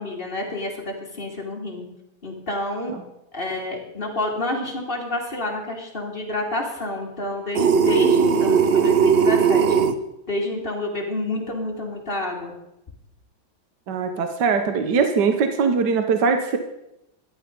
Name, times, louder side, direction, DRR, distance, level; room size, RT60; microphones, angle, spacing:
voice 1, 0.0-1.8 2.2-2.9 3.3-9.8 10.3-12.5, left 1 dB, 25° left, 0 dB, 2.7 m, -29 dB
sound 1, 7.5-9.9, right 6 dB, 85° right, 0.5 m, -18 dB
voice 2, 13.9-16.6, right 5 dB, 60° right, 7 dB, 1.6 m, -21 dB
13.0 x 11.0 x 5.3 m, 0.86 s
omnidirectional pair, 2.2 m